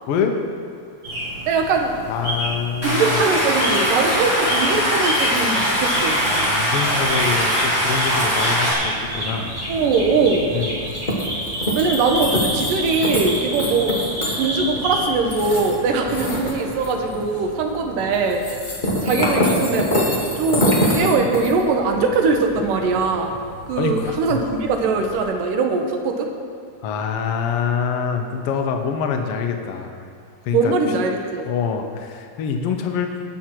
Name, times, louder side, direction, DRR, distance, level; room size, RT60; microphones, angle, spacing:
voice 1, 0.1-0.4 2.1-3.2 6.2-9.6 10.5-10.8 23.8-24.4 26.8-30.1 30.4-30.7 31.5-33.1, left 6 dB, 90° left, 4 dB, 1.2 m, -25 dB
sound 1, 1.0-15.1, equal, 30° right, 3.4 m, -29 dB
voice 2, 1.5-1.9 2.8-6.2 9.7-10.5 11.8-14.0 14.3-18.5 19.0-23.4 23.7-26.3 30.5-31.5, right 4 dB, 85° right, 3 dB, 2.7 m, -21 dB
Stream, 2.8-8.7, equal, 5° right, 2.8 m, -21 dB
sound 2, 8.8-25.2, equal, 45° left, 0.5 m, -27 dB
19.0 x 6.4 x 4.5 m, 2.5 s
omnidirectional pair, 3.8 m